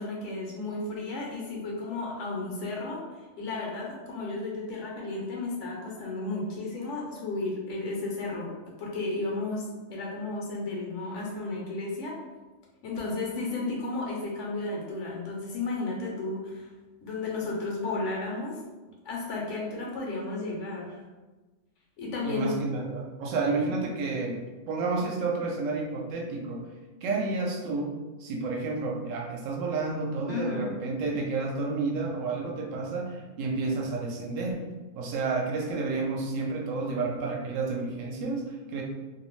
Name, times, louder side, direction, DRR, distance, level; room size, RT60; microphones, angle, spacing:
voice 1, 0.0-3.0 3.4-8.5 8.8-12.2 12.8-16.7 17.0-18.6 19.0-21.0 22.0-22.5 30.3-30.7, left 3 dB, 75° left, -3 dB, 0.9 m, -33 dB
voice 2, 22.2-26.6 27.0-27.9 28.2-34.6 35.0-38.8, right 3 dB, 85° right, 0 dB, 0.9 m, -30 dB
2.5 x 2.0 x 3.0 m, 1.2 s
omnidirectional pair, 1.3 m